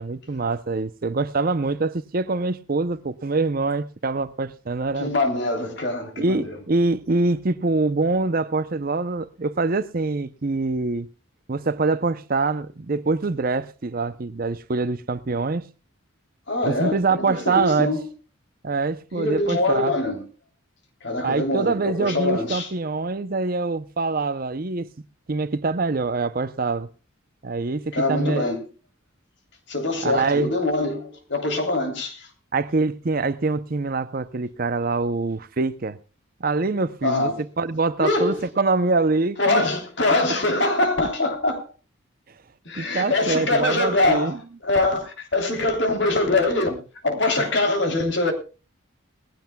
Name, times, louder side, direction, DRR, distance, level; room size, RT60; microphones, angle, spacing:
voice 1, 0.0-5.1 6.2-11.1 11.5-15.7 16.6-17.9 18.6-20.0 21.2-24.9 25.3-26.9 27.4-28.4 30.0-30.5 32.5-36.0 36.4-37.3 37.6-39.7 42.8-44.4, right 3 dB, 45° right, 0.6 m, -24 dB
voice 2, 5.0-6.6 16.5-18.1 19.1-20.2 21.0-22.7 27.9-28.6 29.7-32.3 37.0-37.4 38.0-38.4 39.4-41.7 42.6-44.4 44.6-48.3, left 2 dB, 55° left, 3.1 m, -23 dB
20.0 x 15.0 x 2.2 m
head